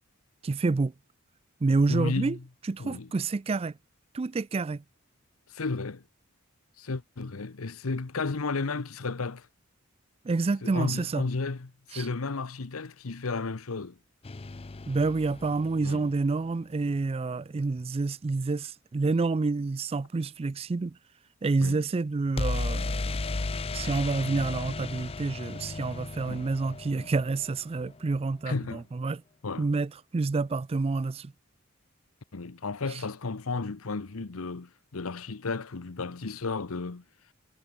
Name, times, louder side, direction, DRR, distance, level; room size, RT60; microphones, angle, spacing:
voice 1, 0.4-0.9 1.6-2.4 2.7-3.8 4.1-4.8 10.2-11.2 11.9-12.1 14.9-21.0 21.4-23.2 23.7-29.2 29.6-31.3 32.9-33.0, right 3 dB, 30° right, 0.4 m, -28 dB
voice 2, 1.9-2.4 2.8-3.1 5.5-6.0 6.8-9.5 10.6-14.0 15.8-16.0 21.6-21.8 24.3-24.5 26.3-26.5 28.5-28.8 29.4-29.7 32.3-37.0, left 3 dB, 85° left, 0.9 m, -33 dB
sound 1, 14.2-16.3 22.4-28.1, left 3 dB, 25° left, 0.5 m, -35 dB
head